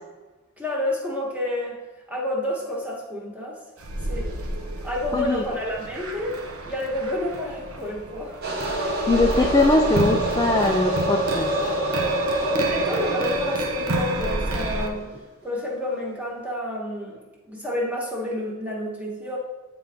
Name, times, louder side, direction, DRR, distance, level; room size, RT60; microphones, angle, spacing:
voice 1, 0.6-1.8 2.1-3.6 4.1-4.3 4.8-8.4 12.5-15.1 15.4-17.2 17.4-19.4, left 1 dB, 5° right, -4 dB, 1.2 m, -29 dB
sound 1, 3.8-14.9, right 1 dB, 75° right, 0.7 m, -30 dB
voice 2, 5.1-5.4 9.1-11.5, left 2 dB, 15° left, 0 dB, 0.3 m, -21 dB
sound 2, 8.4-15.1, right 1 dB, 45° right, 1.0 m, -26 dB
8.8 x 3.8 x 3.5 m, 1.2 s
head